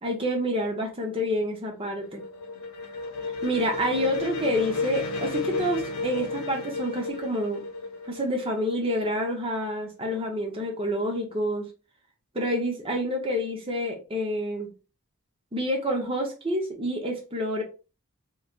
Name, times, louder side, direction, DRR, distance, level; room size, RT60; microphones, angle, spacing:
voice 1, 0.0-2.2 3.4-7.6 8.1-11.7 12.3-14.7 15.5-17.6, equal, 25° right, 1 dB, 0.8 m, -28 dB
sound 1, 1.4-9.2, left 3 dB, 80° left, 0.7 m, -33 dB
3.2 x 3.0 x 2.4 m, 0.33 s
head